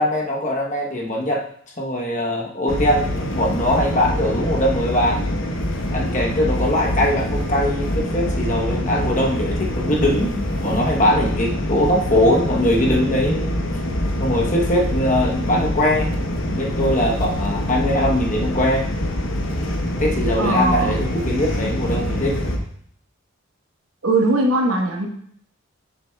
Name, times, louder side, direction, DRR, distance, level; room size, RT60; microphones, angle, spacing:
voice 1, 0.0-1.4 1.8-5.2 5.9-13.5 14.2-16.1 16.4-18.9 20.0-22.4, left 1 dB, 35° left, -1 dB, 1.0 m, -21 dB
sound 1, 2.7-22.6, equal, 65° left, 0.9 m, -25 dB
voice 2, 20.4-20.9 24.0-25.1, right 2 dB, 80° right, 1 dB, 1.2 m, -19 dB
7.5 x 6.6 x 2.3 m, 0.64 s
head